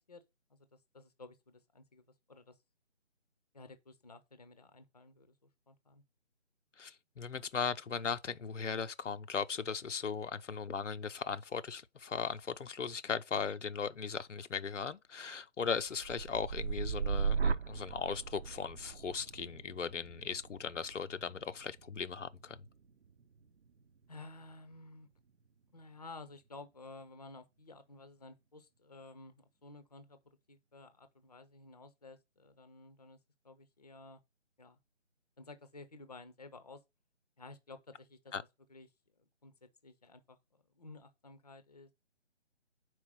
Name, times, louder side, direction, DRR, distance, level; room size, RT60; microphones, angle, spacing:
voice 1, 0.5-2.6 3.5-6.0 24.1-25.1 25.7-30.2 30.5-33.2 33.4-34.2 34.6-34.8 35.4-36.8 37.4-38.3 38.7-38.9 39.2-41.9, left 3 dB, 35° left, 0.7 m, -53 dB
voice 2, 6.8-22.6 38.3-38.4, left 6 dB, 80° left, 0.8 m, -38 dB
sound 1, 15.8-23.8 24.3-24.7, right 6 dB, 60° right, 0.8 m, -38 dB
4.9 x 4.6 x 5.5 m
figure-of-eight pair, 170°, 36 cm